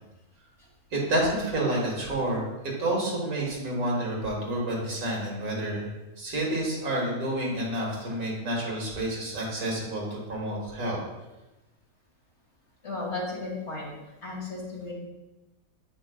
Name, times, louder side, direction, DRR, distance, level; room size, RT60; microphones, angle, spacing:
voice 1, 0.9-2.4 2.8-5.9 6.2-11.0, right 1 dB, 90° right, -4 dB, 2.2 m, -29 dB
voice 2, 12.8-13.9 14.2-14.9, left 2 dB, 50° left, -3 dB, 1.9 m, -34 dB
8.7 x 5.7 x 2.3 m, 1.1 s
omnidirectional pair, 1.5 m